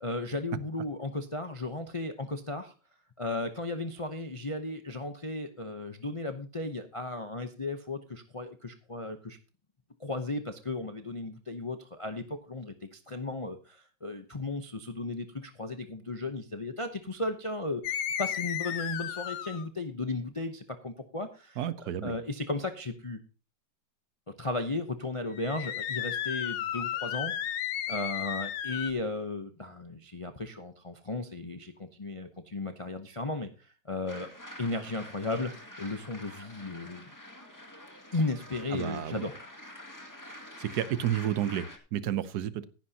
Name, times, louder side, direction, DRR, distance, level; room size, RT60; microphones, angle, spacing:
voice 1, 0.0-2.7 3.2-9.4 10.0-23.2 24.4-27.6 27.9-34.3 34.6-35.5 35.8-37.1 38.1-39.3, left 2 dB, 45° left, 6 dB, 0.4 m, -35 dB
sound 1, 17.8-19.7 25.3-28.9, left 10 dB, 75° left, 1.5 m, -34 dB
voice 2, 21.6-22.2 38.7-39.2 40.6-42.6, right 11 dB, 65° right, 14 dB, 1.2 m, -31 dB
sound 2, 34.1-41.8, left 1 dB, 10° left, 1.7 m, -47 dB
15.5 x 10.5 x 2.8 m, 0.34 s
omnidirectional pair, 2.0 m